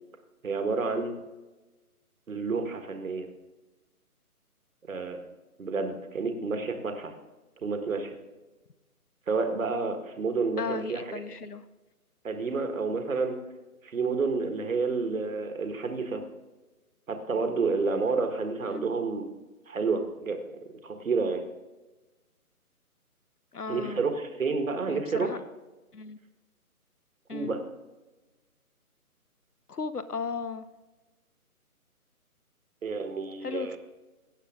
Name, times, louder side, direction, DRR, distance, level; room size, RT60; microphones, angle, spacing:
voice 1, 0.4-1.2 2.3-3.3 4.9-5.2 5.6-7.1 7.6-8.2 9.3-11.2 12.2-13.4 13.8-16.2 17.1-19.3 19.7-20.4 20.8-21.4 23.7-25.4 27.3-27.6 32.8-33.8, right 4 dB, 60° right, 6 dB, 1.7 m, -29 dB
voice 2, 10.6-11.6 18.7-18.9 23.5-24.0 24.9-25.4 25.9-26.2 27.3-27.5 29.7-30.7 33.4-33.8, left 4 dB, 90° left, 14 dB, 0.9 m, -35 dB
16.5 x 7.6 x 3.7 m, 1.1 s
figure-of-eight pair, 145°, 45 cm